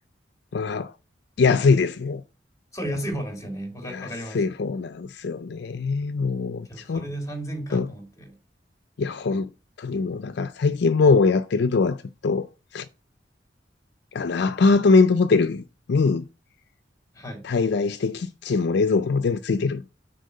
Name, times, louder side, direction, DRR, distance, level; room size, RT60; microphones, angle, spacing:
voice 1, 0.5-0.9 1.4-2.2 3.9-7.0 7.7-7.9 9.0-9.5 9.8-12.5 12.7-12.9 14.1-15.6 15.9-16.2 17.4-19.9, left 4 dB, 65° left, 0.4 m, -22 dB
voice 2, 2.7-4.4 6.7-8.4 17.1-17.5, right 1 dB, 20° left, 2.5 m, -33 dB
6.4 x 4.5 x 6.6 m
head